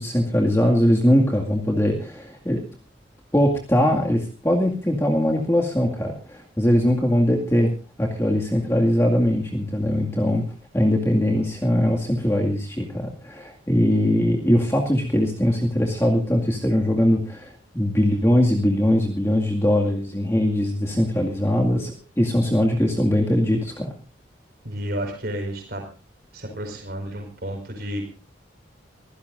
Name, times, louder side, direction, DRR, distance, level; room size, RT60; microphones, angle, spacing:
voice 1, 0.0-2.6 3.3-7.7 8.0-10.4 10.7-23.9, equal, 15° left, 0 dB, 2.1 m, -21 dB
voice 2, 24.6-25.8 26.3-28.1, equal, 55° right, 2 dB, 5.0 m, -31 dB
24.0 x 16.5 x 2.6 m, 0.36 s
head